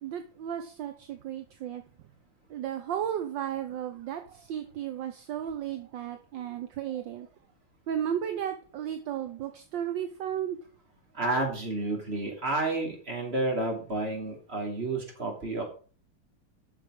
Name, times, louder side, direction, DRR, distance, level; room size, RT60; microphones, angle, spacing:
voice 1, 0.0-1.8 2.5-7.3 7.9-10.6, right 9 dB, 70° right, 7 dB, 1.4 m, -34 dB
voice 2, 11.1-15.6, right 2 dB, 30° right, 1 dB, 3.1 m, -30 dB
8.4 x 6.5 x 6.3 m, 0.40 s
omnidirectional pair, 2.3 m